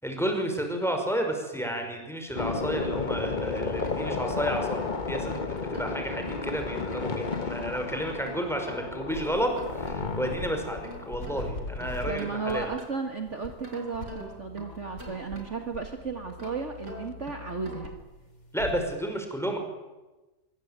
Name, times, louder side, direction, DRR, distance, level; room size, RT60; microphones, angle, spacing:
voice 1, 0.0-12.7 18.5-19.6, equal, ahead, 4 dB, 5.3 m, -31 dB
sound 1, 2.3-12.3 14.0-14.1 14.3-14.4 15.7-16.2, left 4 dB, 30° left, 1.4 m, -33 dB
sound 2, 3.3-4.7 5.1-7.5 8.2-10.3 10.6-13.2 13.6-15.8 16.3-18.0, right 1 dB, 75° right, 6.5 m, -46 dB
sound 3, 9.1-10.5 10.8-12.1 12.5-12.8 13.3-13.5 13.9-15.5 15.7-18.8, left 2 dB, 50° left, 4.4 m, -41 dB
voice 2, 12.1-18.0, right 4 dB, 45° right, 5 dB, 2.2 m, -34 dB
25.0 x 24.0 x 9.0 m, 1.1 s
omnidirectional pair, 1.8 m